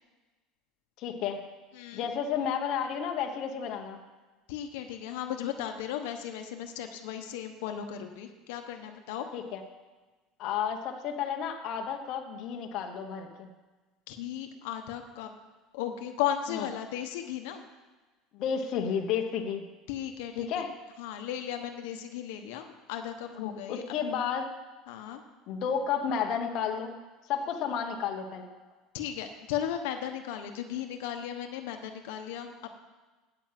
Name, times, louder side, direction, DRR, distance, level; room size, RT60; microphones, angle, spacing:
voice 1, 1.0-1.4 1.9-4.0 9.3-9.6 10.4-13.5 16.5-16.7 18.3-19.6 20.3-20.7 23.7-24.5 25.5-27.0 27.3-28.5, left 7 dB, 45° left, 3 dB, 1.1 m, -32 dB
voice 2, 1.7-2.1 4.5-9.3 14.1-15.3 15.7-17.6 19.9-20.7 21.0-23.8 24.9-25.2 28.9-32.7, left 10 dB, 80° left, 5 dB, 1.1 m, -36 dB
9.2 x 8.8 x 7.6 m, 1.3 s
cardioid pair, 160°, 0 cm